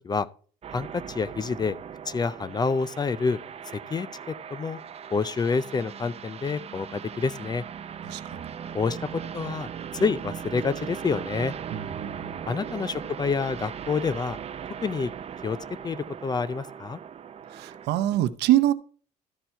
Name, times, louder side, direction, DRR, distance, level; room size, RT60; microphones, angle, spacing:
sound 1, 0.6-17.9, right 8 dB, 35° right, 0.6 m, -39 dB
voice 1, 0.7-1.8 2.1-3.4 3.9-4.8 5.1-7.6 8.7-9.0 9.3-11.5 12.5-14.4 14.8-15.1 15.4-15.6 15.8-17.0, left 5 dB, 25° left, 0.4 m, -28 dB
voice 2, 8.0-8.5 11.7-12.4 17.5-18.7, right 14 dB, 80° right, 0.7 m, -25 dB
12.5 x 4.4 x 4.4 m
cardioid pair, 110°, 17 cm